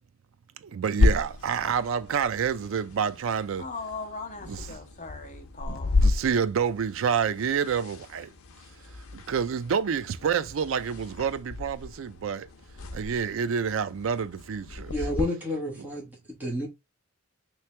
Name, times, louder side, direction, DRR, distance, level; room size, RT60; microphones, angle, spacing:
voice 1, 0.6-3.7 4.5-4.8 5.7-8.3 9.1-12.5 12.9-14.9 15.8-15.9, right 7 dB, 65° right, 0.4 m, -28 dB
sound 1, 1.0-15.2, left 3 dB, 85° left, 0.6 m, -32 dB
voice 2, 3.6-6.0, left 4 dB, 35° left, 0.9 m, -39 dB
voice 3, 14.9-16.1 16.4-16.7, left 1 dB, 10° right, 1.2 m, -30 dB
3.3 x 3.1 x 3.1 m
head